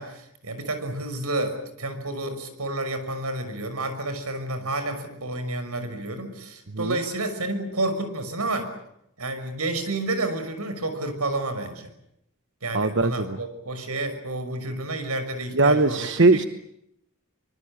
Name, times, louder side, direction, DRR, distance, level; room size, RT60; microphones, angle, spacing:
voice 1, 0.0-8.7 9.2-11.9 12.6-16.1, right 2 dB, 85° right, 9 dB, 6.0 m, -30 dB
voice 2, 12.7-13.4 15.5-16.4, right 3 dB, 55° right, 10 dB, 1.1 m, -20 dB
24.5 x 24.5 x 8.8 m, 0.78 s
head